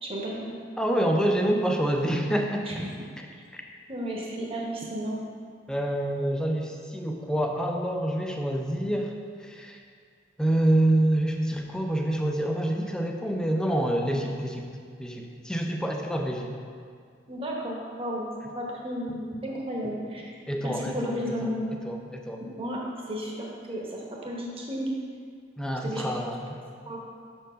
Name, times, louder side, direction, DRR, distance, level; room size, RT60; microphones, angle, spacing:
voice 1, 0.0-0.6 2.6-2.9 3.9-5.2 17.3-18.3 18.5-20.3 20.6-21.6 22.6-22.8 23.1-24.9 25.8-26.1 26.9-27.0, equal, 30° right, -3 dB, 1.1 m, -33 dB
voice 2, 0.8-2.8 5.7-9.8 10.4-14.7 15.0-16.5 20.5-21.5 21.8-22.4 25.6-26.6, right 1 dB, 5° left, 1 dB, 0.5 m, -27 dB
6.2 x 4.5 x 5.1 m, 2.1 s
head